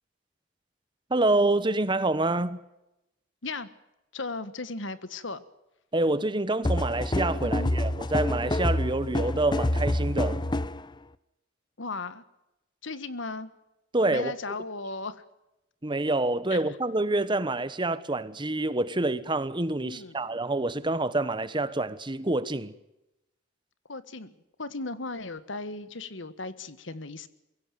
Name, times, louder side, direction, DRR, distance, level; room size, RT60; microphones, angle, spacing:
voice 1, 1.1-2.6 5.9-10.4 13.9-14.3 15.8-22.7, right 2 dB, 25° right, 1.1 m, -27 dB
voice 2, 4.1-5.4 7.4-7.7 11.8-12.2 12.8-13.5 14.1-15.2 16.5-16.6 19.8-20.2 23.9-24.3 24.6-27.3, left 3 dB, 75° left, 1.6 m, -36 dB
sound 1, 6.6-10.9, left 1 dB, 25° left, 0.7 m, -27 dB
23.0 x 16.5 x 9.2 m
head